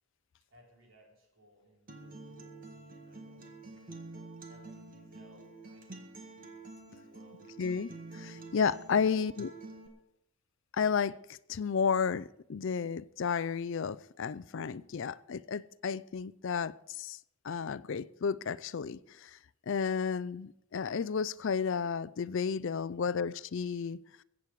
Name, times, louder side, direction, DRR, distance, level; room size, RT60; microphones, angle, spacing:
voice 1, 0.5-6.0 6.9-7.4 8.9-9.2 9.7-9.9, equal, 60° right, 3.7 m, -62 dB
Acoustic guitar, 1.9-9.9, right 2 dB, 40° right, 1.7 m, -48 dB
voice 2, 7.6-9.5 10.7-17.2 17.4-19.4 19.7-24.0, left 6 dB, 55° left, 0.4 m, -32 dB
21.5 x 8.4 x 4.8 m
head